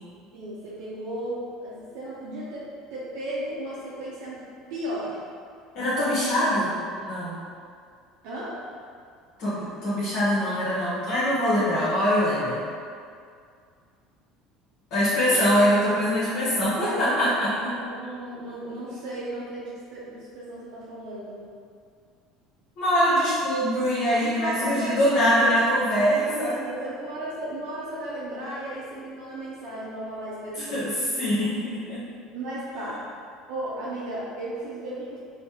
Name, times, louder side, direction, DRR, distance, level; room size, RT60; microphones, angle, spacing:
voice 1, 0.3-4.4 4.7-5.2 8.2-8.6 16.8-17.1 17.4-21.5 24.2-25.4 25.8-30.8 32.3-33.0 33.5-35.2, right 1 dB, 65° right, -8 dB, 0.5 m, -35 dB
voice 2, 5.7-6.7 7.0-7.3 9.4-12.6 14.9-17.5 22.8-26.6 30.5-32.0 32.8-32.9, equal, 60° left, -10 dB, 0.7 m, -23 dB
3.2 x 2.0 x 2.8 m, 2.2 s
hypercardioid pair, 70°, 0 cm